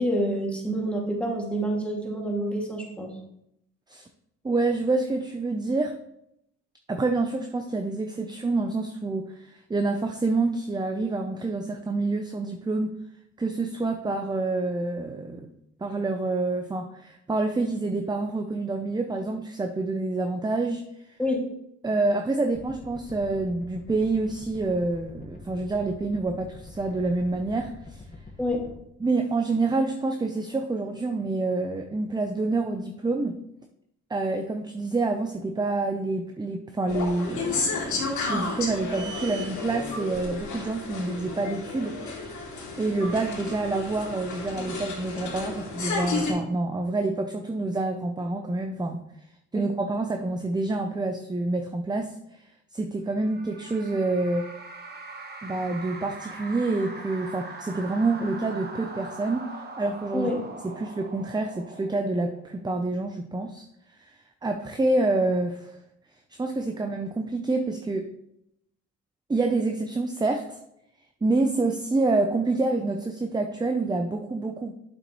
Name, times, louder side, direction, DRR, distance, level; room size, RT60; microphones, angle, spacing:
voice 1, 0.0-3.1 21.2-21.4 28.4-28.6 49.5-49.6 60.1-60.4, equal, 5° left, -1 dB, 2.3 m, -27 dB
voice 2, 4.4-6.0 6.9-12.9 13.4-15.5 15.8-20.8 21.8-28.0 29.0-33.4 34.1-42.4 42.8-49.0 49.5-52.1 52.7-54.5 55.4-60.3 60.6-63.6 64.0-64.1 64.4-65.7 66.4-68.1 69.3-70.6 71.2-74.7, right 3 dB, 15° right, 5 dB, 0.6 m, -27 dB
sound 1, 22.5-28.7, left 3 dB, 25° left, 1.4 m, -45 dB
sound 2, 36.9-46.3, left 3 dB, 75° left, 2.6 m, -32 dB
sound 3, 53.1-62.8, right 3 dB, 35° right, 1.3 m, -42 dB
8.5 x 7.0 x 3.1 m, 0.80 s
cardioid pair, 90°, 30 cm